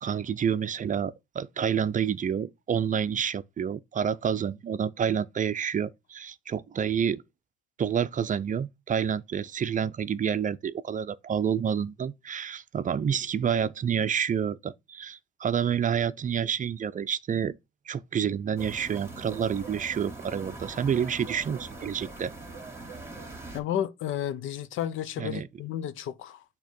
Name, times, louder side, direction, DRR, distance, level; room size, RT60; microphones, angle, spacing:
voice 1, 0.0-7.2 7.8-17.5 17.9-22.3 25.2-25.5, right 8 dB, 40° right, 0.5 m, -28 dB
sound 1, 18.6-23.6, right 3 dB, 15° right, 2.4 m, -42 dB
voice 2, 23.5-26.4, left 10 dB, 85° left, 0.7 m, -32 dB
6.5 x 3.0 x 5.1 m
cardioid pair, 90°, 20 cm